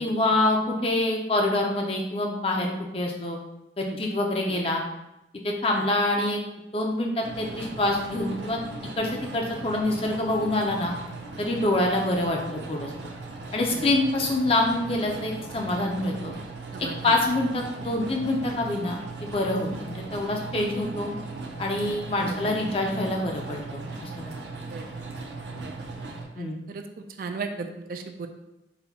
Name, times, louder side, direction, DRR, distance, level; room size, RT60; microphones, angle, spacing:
voice 1, 0.0-3.4 3.8-4.8 5.4-6.4 6.7-8.6 9.0-10.9 11.4-12.9 13.5-16.3 16.8-21.1 21.6-24.3 26.4-26.6, left 2 dB, 30° left, 0 dB, 0.5 m, -26 dB
sound 1, 7.2-26.2, right 3 dB, 80° right, 0.7 m, -38 dB
voice 2, 26.4-26.8 27.2-28.3, right 4 dB, 50° right, 6 dB, 0.3 m, -36 dB
4.1 x 2.3 x 4.1 m, 0.93 s
head